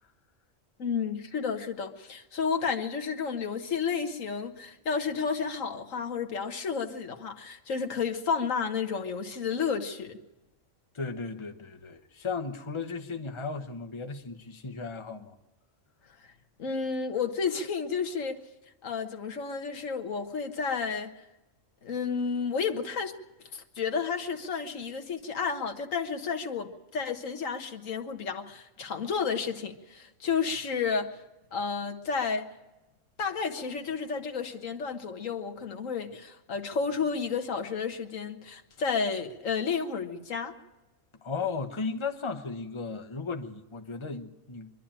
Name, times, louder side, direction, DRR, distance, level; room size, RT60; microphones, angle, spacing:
voice 1, 0.8-10.2 16.6-18.4 18.8-21.1 21.8-23.2 23.5-31.2 31.5-32.5 33.2-40.5, left 5 dB, 80° left, 1.7 m, -31 dB
voice 2, 10.9-15.4 41.2-44.7, left 4 dB, 25° left, 1.1 m, -35 dB
24.5 x 12.0 x 8.9 m
omnidirectional pair, 1.3 m